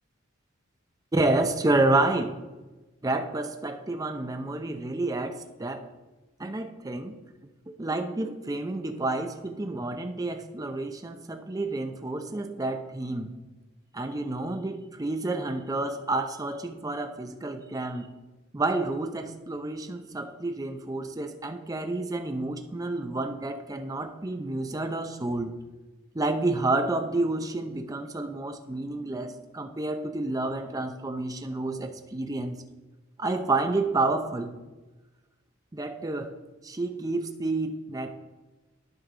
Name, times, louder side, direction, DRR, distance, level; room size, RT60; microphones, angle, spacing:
voice 1, 1.1-2.3 3.0-5.8 6.4-7.1 7.8-13.4 13.9-18.1 18.5-25.6 26.1-32.6 33.2-34.6 35.7-36.3 36.6-38.1, right 2 dB, 20° right, 6 dB, 0.5 m, -29 dB
11.0 x 5.2 x 3.8 m, 1.1 s
head